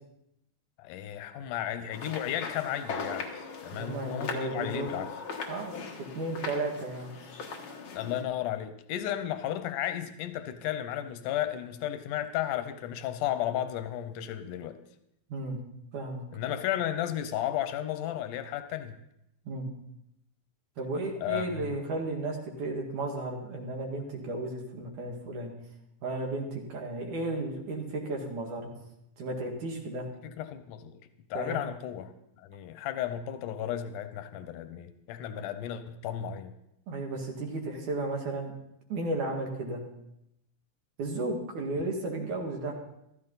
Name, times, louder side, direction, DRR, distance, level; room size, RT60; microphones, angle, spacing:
voice 1, 0.8-5.2 7.9-14.8 16.3-19.0 21.2-21.8 30.4-31.0 31.3-36.5, left 11 dB, 90° left, 10 dB, 2.3 m, -34 dB
sound 1, 1.9-8.2, left 4 dB, 50° left, 1.9 m, -39 dB
voice 2, 3.7-4.9 5.5-7.1 15.3-15.6 15.9-16.2 19.5-19.7 20.8-25.5 26.0-28.7 29.2-30.1 31.3-31.7 36.9-38.5 38.9-39.8 41.0-42.7, right 2 dB, 80° right, 1 dB, 3.4 m, -34 dB
14.5 x 13.5 x 4.1 m, 0.82 s
omnidirectional pair, 3.5 m